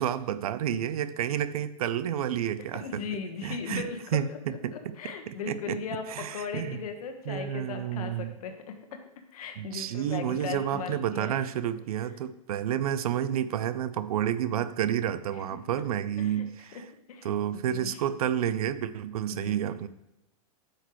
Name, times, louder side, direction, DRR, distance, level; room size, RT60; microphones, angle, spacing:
voice 1, 0.0-3.0 3.4-4.3 4.6-4.7 5.3-5.8 6.1-6.8 7.3-8.3 9.6-16.8 17.2-19.9, right 10 dB, 80° right, 14 dB, 0.6 m, -30 dB
voice 2, 2.6-4.4 4.7-9.0 9.3-11.4 15.3-15.6 16.2-16.5 16.7-18.0 19.3-19.5, left 6 dB, 80° left, 6 dB, 1.4 m, -38 dB
9.6 x 6.5 x 3.1 m, 0.90 s
supercardioid pair, 145°, 19 cm